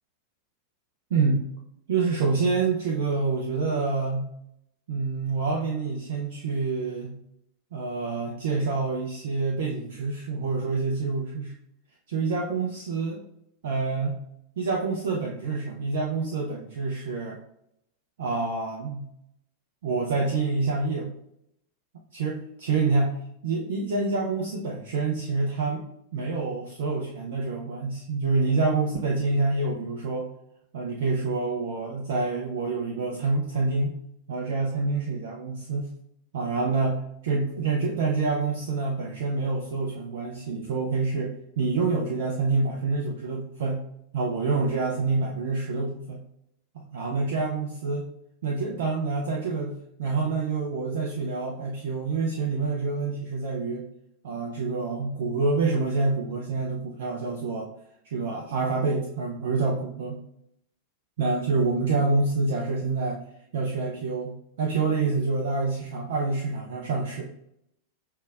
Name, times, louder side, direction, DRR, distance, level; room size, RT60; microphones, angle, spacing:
voice 1, 1.1-1.5 1.9-4.3 4.9-7.1 7.7-11.5 12.1-13.2 13.6-14.2 14.6-17.4 18.2-19.1 19.8-21.1 22.1-25.8 26.1-30.3 30.7-33.9 34.3-35.9 36.3-43.9 44.1-46.2 46.7-48.1 48.4-49.7 50.0-53.9 54.2-57.7 58.0-60.2 61.2-63.2 63.5-67.2, right 3 dB, 55° right, -1 dB, 0.6 m, -27 dB
6.4 x 3.4 x 2.5 m, 0.75 s
figure-of-eight pair, 90°, 0 cm